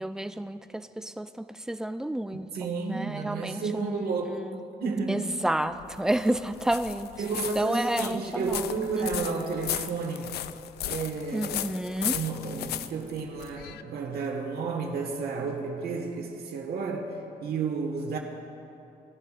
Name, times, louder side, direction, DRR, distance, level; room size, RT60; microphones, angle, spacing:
voice 1, 0.0-4.6 5.1-7.1 7.3-9.3 11.3-12.2, right 1 dB, 5° right, 10 dB, 0.3 m, -31 dB
voice 2, 2.5-4.4 4.8-5.2 7.2-10.3 10.9-11.6 12.1-17.1 17.4-18.2, right 4 dB, 70° right, 2 dB, 1.5 m, -31 dB
sound 1, 5.6-13.8, left 12 dB, 80° left, 0.4 m, -36 dB
18.5 x 11.0 x 2.5 m, 2.8 s
cardioid pair, 110°, 17 cm